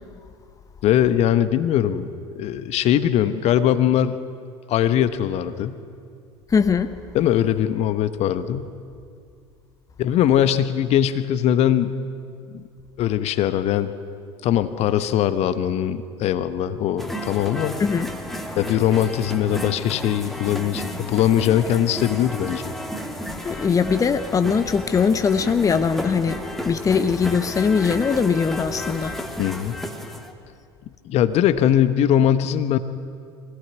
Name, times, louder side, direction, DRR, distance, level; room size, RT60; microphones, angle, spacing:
voice 1, 0.8-2.1 2.3-4.2 4.7-5.8 7.1-8.7 10.0-11.9 12.5-12.6 13.0-13.9 14.4-17.7 18.6-22.7 29.4-29.8 31.0-32.8, left 10 dB, 45° left, 12 dB, 1.1 m, -21 dB
voice 2, 6.5-6.9 17.8-18.1 23.4-29.2, left 6 dB, 25° left, 10 dB, 1.0 m, -21 dB
sound 1, 17.0-30.3, equal, ahead, 2.4 m, -33 dB
23.5 x 18.0 x 9.6 m, 2.4 s
figure-of-eight pair, 70°, 15 cm